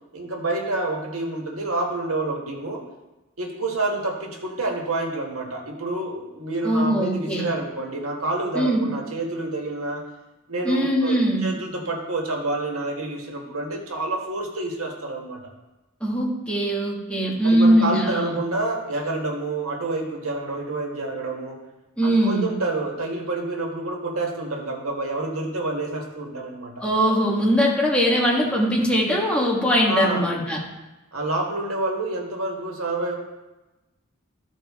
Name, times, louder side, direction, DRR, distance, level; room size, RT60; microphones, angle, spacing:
voice 1, 0.1-2.8 3.4-10.0 10.5-15.4 17.4-21.6 22.0-26.8 29.8-30.3 31.1-33.2, right 2 dB, 90° right, 1 dB, 1.6 m, -28 dB
voice 2, 6.6-7.5 8.5-8.9 10.6-11.4 16.0-18.4 22.0-22.5 26.8-30.6, equal, 5° left, -3 dB, 1.7 m, -21 dB
14.0 x 5.1 x 3.6 m, 1.1 s
head